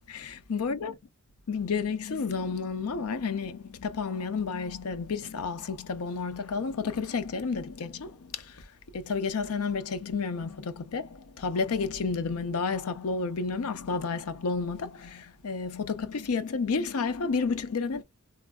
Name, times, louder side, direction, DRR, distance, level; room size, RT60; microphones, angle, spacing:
voice 1, 0.1-0.9 1.5-18.0, left 4 dB, 75° left, 0.6 m, -31 dB
3.1 x 2.3 x 2.3 m
head